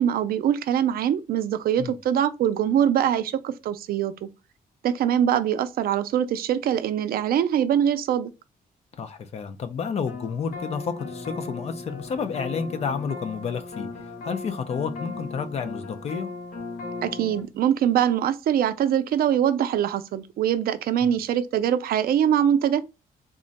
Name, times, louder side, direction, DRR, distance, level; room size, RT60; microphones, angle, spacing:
voice 1, 0.0-4.3 4.8-8.3 17.0-22.9, right 9 dB, 70° right, 0.4 m, -23 dB
voice 2, 9.0-13.9 14.2-16.3 21.0-21.1, left 6 dB, 45° left, 0.4 m, -30 dB
sound 1, 10.1-17.4, left 3 dB, 60° left, 0.9 m, -37 dB
3.6 x 2.1 x 3.9 m
wide cardioid pair, 170°, 16 cm